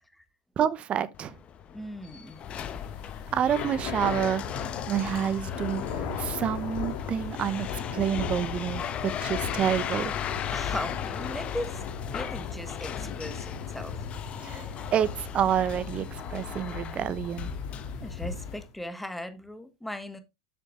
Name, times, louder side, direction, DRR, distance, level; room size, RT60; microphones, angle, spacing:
voice 1, 0.6-1.4 3.3-4.4 4.9-10.1 14.4-17.5, right 9 dB, 35° right, 0.9 m, -28 dB
sound 1, 1.1-18.7, left 9 dB, 35° left, 0.9 m, -38 dB
voice 2, 1.7-2.4 10.5-11.8 12.1-14.0 14.7-14.9 18.0-20.2, left 1 dB, 5° left, 1.4 m, -38 dB
Thunder / Rain, 2.4-18.7, left 6 dB, 50° left, 1.9 m, -37 dB
8.2 x 6.5 x 3.2 m
hypercardioid pair, 90°, 3 cm